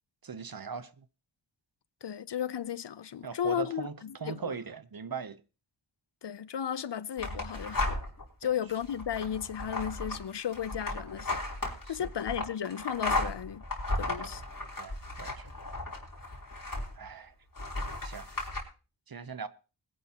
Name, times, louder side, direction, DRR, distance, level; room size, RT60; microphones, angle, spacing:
voice 1, 0.2-1.0 3.2-5.4 11.8-12.1 14.8-15.5 17.0-17.3 18.0-18.3 19.1-19.5, right 6 dB, 50° right, 0.8 m, -39 dB
voice 2, 2.0-4.6 6.2-8.0 8.4-11.4 11.9-13.6 14.0-14.4, left 9 dB, 65° left, 0.6 m, -34 dB
sound 1, 7.2-8.2 8.7-17.1 17.5-18.6, left 2 dB, 45° left, 3.4 m, -35 dB
20.5 x 10.5 x 2.9 m
wide cardioid pair, 65°, 45 cm